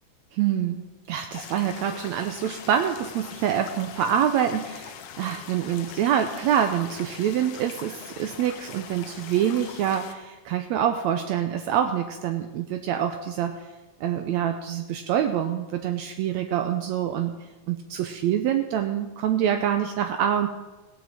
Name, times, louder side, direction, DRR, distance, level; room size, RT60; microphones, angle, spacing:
voice 1, 0.3-0.8 1.1-13.6 14.0-17.4 17.7-20.5, right 9 dB, 75° right, 7 dB, 1.9 m, -26 dB
sound 1, 1.3-10.1, left 9 dB, 85° left, 2.3 m, -42 dB
17.0 x 7.3 x 7.5 m, 1.2 s
omnidirectional pair, 3.4 m